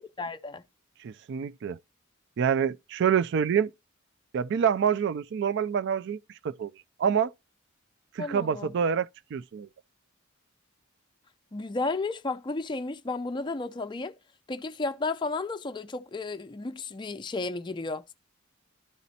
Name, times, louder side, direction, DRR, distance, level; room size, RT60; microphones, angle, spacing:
voice 1, 0.2-0.6 8.2-8.7 11.5-14.2 14.5-18.1, left 3 dB, 20° left, 0.4 m, -33 dB
voice 2, 1.0-1.8 2.4-3.7 4.3-6.7 7.0-7.3 8.2-9.7, right 7 dB, 60° right, 0.3 m, -27 dB
12.0 x 4.1 x 2.8 m
head